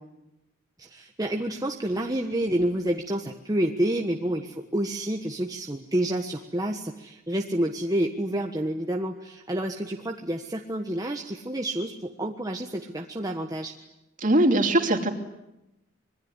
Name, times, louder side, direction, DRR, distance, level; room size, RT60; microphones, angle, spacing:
voice 1, 0.8-13.7, right 1 dB, 20° right, 2 dB, 1.4 m, -29 dB
voice 2, 14.2-15.1, right 1 dB, 40° right, 4 dB, 2.9 m, -21 dB
26.0 x 22.0 x 9.8 m, 0.95 s
head